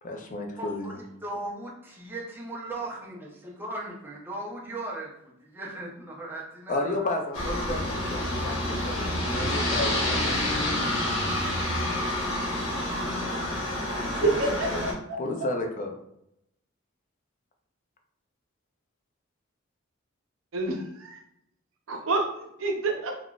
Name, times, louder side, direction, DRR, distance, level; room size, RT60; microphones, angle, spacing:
voice 1, 0.0-1.0 6.7-11.0 13.9-16.0, left 2 dB, 40° left, 3 dB, 0.4 m, -33 dB
voice 2, 0.6-7.1, right 1 dB, 10° right, -3 dB, 0.7 m, -38 dB
Aircraft, 7.3-14.9, left 1 dB, 75° left, 1.0 m, -28 dB
voice 3, 14.2-15.5 20.5-21.2 21.9-23.2, right 3 dB, 85° right, 2 dB, 0.6 m, -29 dB
3.6 x 2.4 x 2.3 m, 0.76 s
head